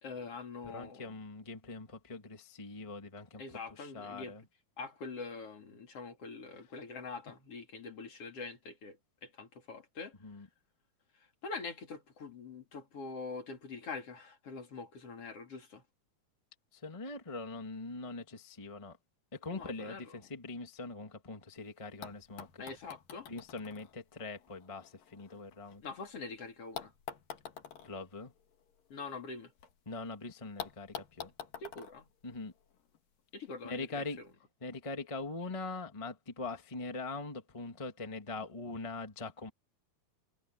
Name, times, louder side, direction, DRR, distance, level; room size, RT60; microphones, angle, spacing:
voice 1, 0.0-1.1 3.4-4.4 4.8-10.1 11.4-15.8 19.5-20.1 22.6-23.3 25.8-26.9 28.9-29.5 31.6-32.1 33.3-34.3, left 4 dB, 40° left, 3.6 m, -44 dB
voice 2, 0.6-3.4 3.7-4.4 10.2-10.5 16.7-19.0 19.3-22.6 23.3-25.8 27.8-28.3 29.8-31.3 32.2-32.5 33.6-34.2 34.6-39.5, left 3 dB, 25° left, 0.7 m, -42 dB
sound 1, 21.6-21.7 22.0-26.1 26.7-29.7 30.0-30.1 30.6-33.0 34.0-34.1, left 9 dB, 65° left, 3.9 m, -48 dB
omnidirectional pair, 4.3 m